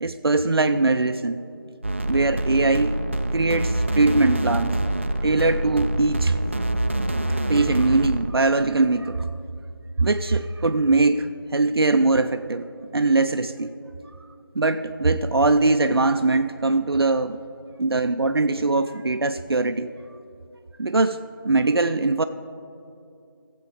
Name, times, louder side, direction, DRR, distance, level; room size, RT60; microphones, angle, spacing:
voice 1, 0.0-1.4 2.1-4.7 5.2-6.4 7.3-9.3 10.0-13.7 14.6-17.4 17.8-19.9 20.8-22.2, right 3 dB, 85° right, 9 dB, 0.5 m, -21 dB
sound 1, 1.8-8.3, right 1 dB, 30° right, 0.4 m, -26 dB
15.5 x 7.6 x 4.0 m, 2.6 s
figure-of-eight pair, 170°, 12 cm